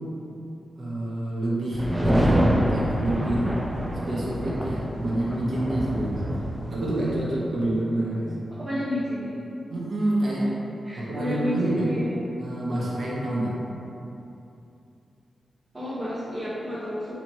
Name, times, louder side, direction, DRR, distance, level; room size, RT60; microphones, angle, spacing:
voice 1, 0.8-3.6 4.1-6.2 6.7-8.4 9.7-10.5 10.9-11.9 12.4-13.6, right 1 dB, 65° right, -6 dB, 1.0 m, -27 dB
sound 1, 1.7-7.2, equal, 15° right, 0.4 m, -26 dB
voice 2, 8.6-9.4 10.8-12.2 15.7-17.2, equal, 35° right, -10 dB, 0.9 m, -30 dB
3.0 x 2.9 x 4.1 m, 2.8 s
cardioid pair, 55°, 0 cm